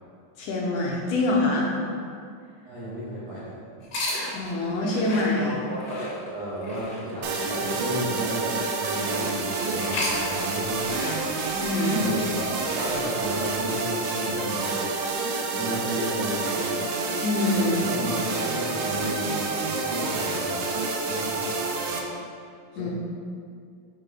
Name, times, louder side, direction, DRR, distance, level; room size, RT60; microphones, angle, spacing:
voice 1, 0.4-1.7 4.3-5.5 11.6-12.0 17.2-17.7 22.8-22.9, left 2 dB, 75° left, -4 dB, 2.2 m, -25 dB
voice 2, 2.6-3.5 5.4-11.1 11.9-14.7 15.4-16.9 17.5-20.8 21.1-21.9 22.7-22.9, right 1 dB, 70° right, -9 dB, 1.6 m, -33 dB
sound 1, 3.8-9.2 9.7-13.7, left 1 dB, 50° left, 1.6 m, -36 dB
sound 2, 7.2-22.0, right 3 dB, 90° right, 1.7 m, -28 dB
5.6 x 5.1 x 4.0 m, 2.3 s
omnidirectional pair, 4.2 m